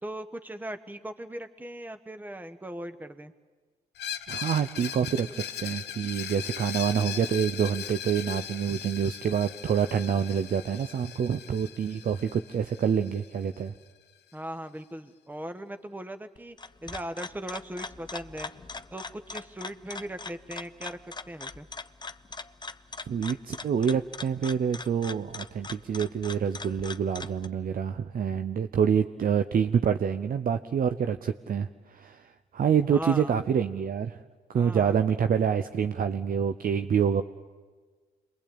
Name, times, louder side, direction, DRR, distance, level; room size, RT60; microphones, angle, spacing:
voice 1, 0.0-3.3 14.3-16.6 16.8-18.5 18.9-21.7 32.9-33.4 34.5-35.0, right 1 dB, 10° right, 9 dB, 1.4 m, -39 dB
Screech, 4.0-13.6, left 10 dB, 70° left, 1.3 m, -39 dB
voice 2, 4.3-13.7 23.1-34.2 34.5-37.2, right 7 dB, 55° right, 8 dB, 0.9 m, -27 dB
sound 1, 16.4-27.5, left 3 dB, 25° left, 1.0 m, -41 dB
27.0 x 22.0 x 8.7 m, 1.4 s
hypercardioid pair, 50°, 18 cm